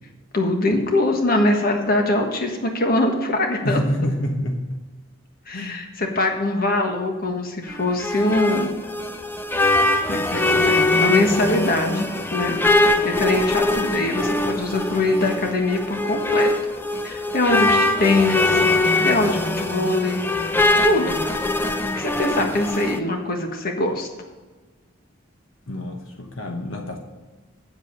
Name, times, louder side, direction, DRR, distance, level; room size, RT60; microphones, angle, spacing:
voice 1, 0.3-3.8 5.5-8.8 10.1-16.5 17.0-20.2 20.8-21.2 21.9-24.1, left 2 dB, 45° left, 3 dB, 1.4 m, -23 dB
voice 2, 3.6-4.8 5.5-5.8 25.7-27.0, equal, 75° left, 3 dB, 1.1 m, -27 dB
sound 1, 7.7-23.0, left 2 dB, 10° left, 0.5 m, -22 dB
8.9 x 7.7 x 5.4 m, 1.3 s
head